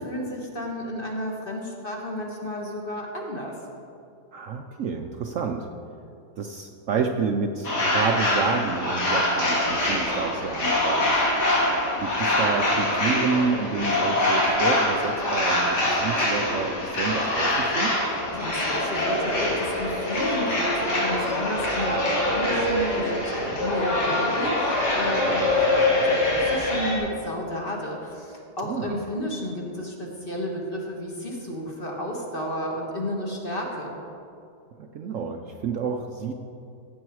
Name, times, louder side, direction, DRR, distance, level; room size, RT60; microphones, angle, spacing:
voice 1, 0.0-3.5 18.3-33.9, left 1 dB, 35° left, -1 dB, 1.6 m, -32 dB
voice 2, 4.3-5.7 6.4-11.2 12.0-17.9 28.6-29.0 34.8-36.3, right 5 dB, 65° right, 4 dB, 0.9 m, -29 dB
sound 1, 7.6-27.0, left 1 dB, 80° left, 2.9 m, -24 dB
15.5 x 7.7 x 4.7 m, 2.6 s
omnidirectional pair, 1.7 m